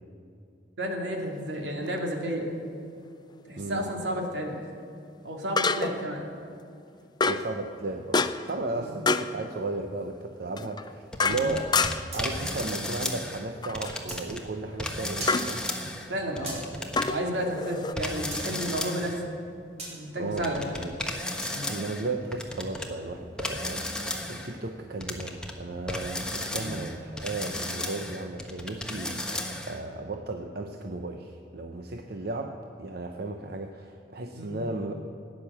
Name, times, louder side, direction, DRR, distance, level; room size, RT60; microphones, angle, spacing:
voice 1, 0.8-2.5 3.5-4.6 5.2-6.2 8.7-8.9 11.3-11.4 16.1-16.6 17.0-19.2 19.9-20.8 21.5-21.7 26.5-26.7 34.3-34.5, equal, 80° right, 1 dB, 2.4 m, -32 dB
sound 1, 1.9-2.0 5.6-6.1 7.2-7.5 8.1-8.6 9.1-9.4 10.6-12.2 13.6-14.0 15.3-15.5 16.9-17.9, left 4 dB, 25° left, 0.4 m, -27 dB
voice 2, 7.2-11.7 12.1-15.6 20.2-20.9 21.7-34.9, right 2 dB, 60° right, 4 dB, 0.8 m, -35 dB
sound 2, 11.1-13.5 13.7-14.4 14.8-17.1 18.0-19.2 20.4-22.9 23.4-24.5 25.0-25.5 25.9-29.8, left 1 dB, 5° left, 1.2 m, -34 dB
sound 3, 12.1-13.2 14.1-14.2 15.2-15.4 16.5-16.6 18.3-18.4 19.8-19.9 21.4-21.6, right 2 dB, 40° right, 4.0 m, -38 dB
16.5 x 10.0 x 7.3 m, 2.5 s
head